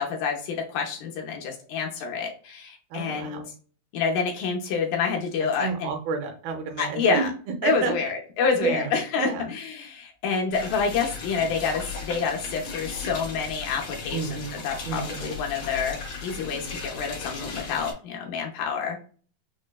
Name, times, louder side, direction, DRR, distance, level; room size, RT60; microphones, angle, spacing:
voice 1, 0.0-3.5 3.9-5.9 6.8-7.3 7.6-19.0, left 5 dB, 80° left, 1 dB, 2.0 m, -28 dB
voice 2, 2.9-3.4 5.6-7.3 7.6-7.9 8.6-8.9 9.2-9.5 14.1-15.3, right 4 dB, 80° right, 4 dB, 2.3 m, -30 dB
sound 1, 10.5-17.9, left 4 dB, 60° left, 1.6 m, -36 dB
6.2 x 2.1 x 2.2 m, 0.41 s
omnidirectional pair, 4.5 m